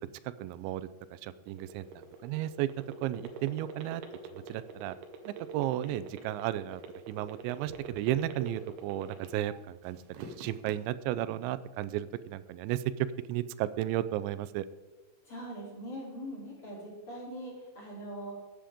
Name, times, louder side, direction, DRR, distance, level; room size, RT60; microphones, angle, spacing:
voice 1, 0.2-2.7 3.0-4.0 4.3-5.0 5.3-6.8 7.1-10.0 10.4-14.7, right 13 dB, 90° right, 14 dB, 2.9 m, -34 dB
sound 1, 1.4-9.6 10.0-10.7, right 6 dB, 70° right, 2.8 m, -44 dB
voice 2, 15.3-18.3, equal, 35° left, -5 dB, 3.5 m, -42 dB
15.0 x 8.5 x 3.6 m, 1.3 s
omnidirectional pair, 5.2 m